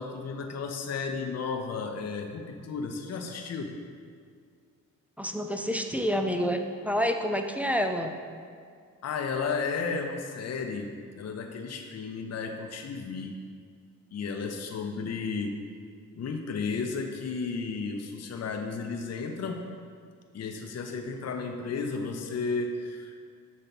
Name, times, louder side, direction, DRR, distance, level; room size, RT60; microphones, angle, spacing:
voice 1, 0.0-3.7 9.0-10.9 11.1-13.4 14.1-15.5 16.2-19.6 20.3-23.2, left 4 dB, 50° left, 3 dB, 0.7 m, -33 dB
voice 2, 5.2-8.1, equal, 5° right, 4 dB, 0.5 m, -28 dB
6.9 x 3.2 x 5.7 m, 2.1 s
cardioid pair, 65°, 34 cm